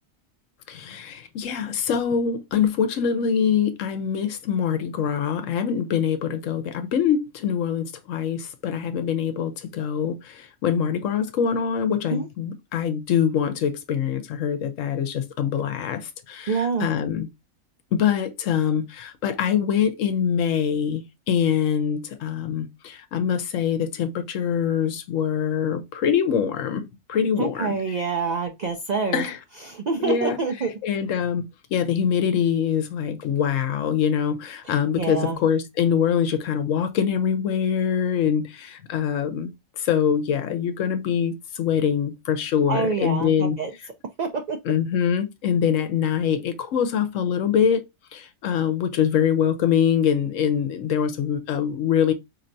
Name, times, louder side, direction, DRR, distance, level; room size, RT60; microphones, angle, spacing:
voice 1, 0.7-17.3 17.9-27.8 29.1-29.4 30.0-30.4 30.8-31.5 31.7-39.5 39.8-43.6 44.6-47.8 48.1-52.1, left 8 dB, 75° left, 1.0 m, -24 dB
voice 2, 16.5-16.9 27.4-29.3 29.7-30.7 34.6-35.4 42.7-43.7 44.2-44.6, right 4 dB, 70° right, 0.4 m, -26 dB
4.3 x 2.8 x 2.6 m
omnidirectional pair, 1.4 m